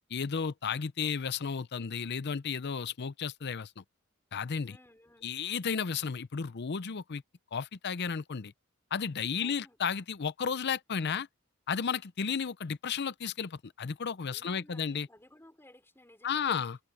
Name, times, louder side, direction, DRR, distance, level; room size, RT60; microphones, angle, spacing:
voice 1, 0.1-3.8 4.3-4.8 5.2-7.2 7.5-8.5 8.9-11.3 11.7-15.1 16.2-16.8, left 6 dB, 50° left, 0.6 m, -33 dB
voice 2, 4.7-5.4 9.4-9.8 14.3-16.7, left 1 dB, 10° left, 3.5 m, -57 dB
head